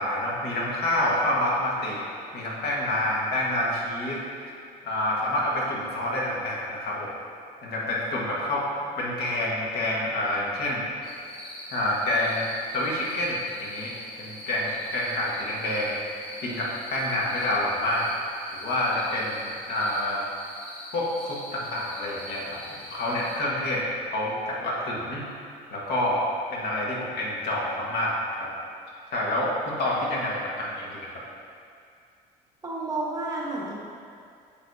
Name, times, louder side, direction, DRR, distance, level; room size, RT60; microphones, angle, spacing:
voice 1, 0.0-2.0 2.3-4.2 4.8-7.1 7.6-8.6 9.0-10.8 11.7-12.5 12.7-13.9 14.2-16.0 16.4-18.1 18.5-20.3 20.9-23.8 24.1-25.2 25.7-26.2 26.5-28.5 29.1-31.2, left 1 dB, 70° left, -4 dB, 1.5 m, -28 dB
sound 1, 11.0-23.4, left 1 dB, 35° left, 1.6 m, -43 dB
voice 2, 32.6-33.8, right 2 dB, 20° right, -4 dB, 1.4 m, -31 dB
7.9 x 6.6 x 2.7 m, 2.4 s
cardioid pair, 110°, 17 cm